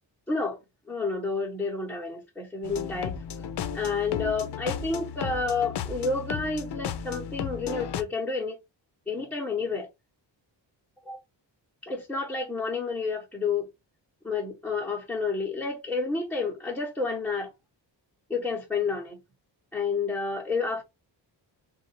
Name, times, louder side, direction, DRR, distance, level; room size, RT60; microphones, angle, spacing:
voice 1, 0.3-0.6 0.9-3.1 3.7-8.6 9.1-9.9 11.0-11.2 11.8-13.7 14.2-17.5 18.3-19.2 19.7-20.8, left 4 dB, ahead, 1.0 m, -30 dB
sound 1, 2.6-8.0, left 8 dB, 60° left, 0.6 m, -34 dB
3.9 x 2.6 x 4.2 m
wide cardioid pair, 125°, 45 cm